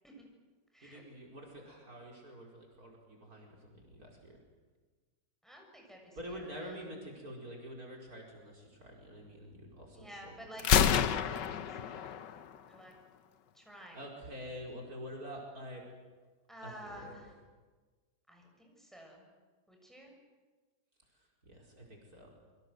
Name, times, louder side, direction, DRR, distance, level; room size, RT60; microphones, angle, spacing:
voice 1, 0.8-4.4 6.2-10.4 13.9-15.8 16.6-17.2 21.5-22.3, equal, 55° right, -1 dB, 5.4 m, -47 dB
voice 2, 5.4-6.9 9.9-12.3 12.7-12.9 13.5-14.0 16.5-17.3 18.3-19.2 19.7-20.2, equal, ahead, 1 dB, 7.0 m, -52 dB
Gunshot gunfire, 10.6-12.6, left 8 dB, 80° left, 1.6 m, -28 dB
28.0 x 24.0 x 8.0 m, 1.3 s
omnidirectional pair, 1.9 m